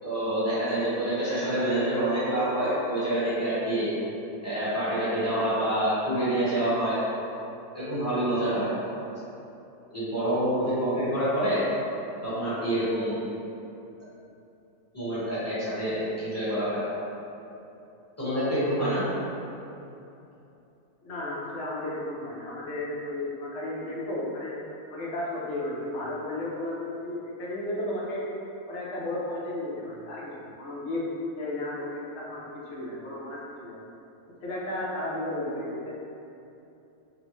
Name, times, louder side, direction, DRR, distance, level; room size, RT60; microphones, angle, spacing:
voice 1, 0.0-3.9 4.4-7.0 7.7-8.7 9.9-11.6 12.2-13.2 14.9-16.8 18.2-19.0, right 1 dB, 10° left, -14 dB, 1.0 m, -27 dB
voice 2, 21.0-24.6 24.9-28.2 28.7-33.8 34.4-35.9, left 1 dB, 60° left, -6 dB, 0.8 m, -33 dB
3.9 x 2.1 x 3.1 m, 2.8 s
omnidirectional pair, 1.6 m